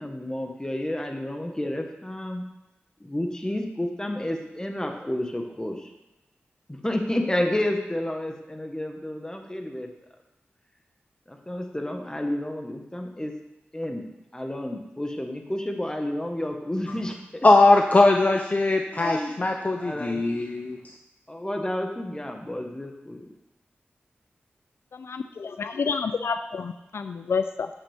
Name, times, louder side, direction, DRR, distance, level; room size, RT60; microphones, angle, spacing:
voice 1, 0.0-2.4 3.0-5.9 6.7-9.9 11.3-13.3 13.7-14.1 14.3-17.5 18.8-19.3 19.7-20.2 21.3-23.2, left 1 dB, 15° left, 3 dB, 1.3 m, -30 dB
voice 2, 17.4-21.0, left 2 dB, 35° left, 3 dB, 0.6 m, -20 dB
voice 3, 24.9-27.7, left 5 dB, 75° left, 9 dB, 0.4 m, -29 dB
9.1 x 7.3 x 3.5 m, 0.96 s
cardioid pair, 50°, 4 cm